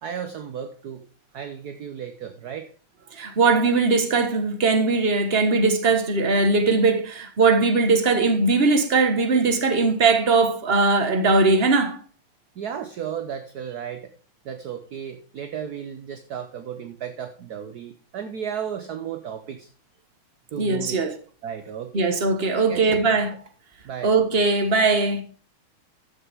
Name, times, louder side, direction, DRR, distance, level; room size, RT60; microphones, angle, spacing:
voice 1, 0.0-1.1 1.3-2.7 12.6-14.1 14.4-19.7 20.5-21.1 21.4-22.2 22.5-23.2 23.8-24.1, right 8 dB, 60° right, 1.2 m, -34 dB
voice 2, 3.1-12.0 20.6-21.2 21.9-23.3 24.0-25.2, right 3 dB, 30° right, 1.5 m, -20 dB
13.5 x 7.2 x 3.5 m
omnidirectional pair, 2.3 m